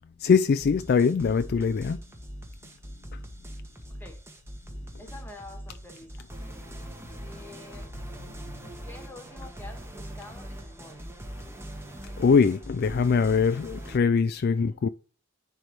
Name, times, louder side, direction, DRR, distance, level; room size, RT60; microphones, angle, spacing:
voice 1, 0.2-2.0 3.1-3.2 12.2-14.9, left 5 dB, 45° left, 0.3 m, -22 dB
sound 1, 0.6-14.0, equal, 10° right, 1.2 m, -41 dB
voice 2, 3.9-4.2 5.0-6.2 7.3-7.9 8.8-11.1 14.5-14.8, left 2 dB, 10° left, 1.5 m, -47 dB
10.0 x 3.4 x 4.6 m
head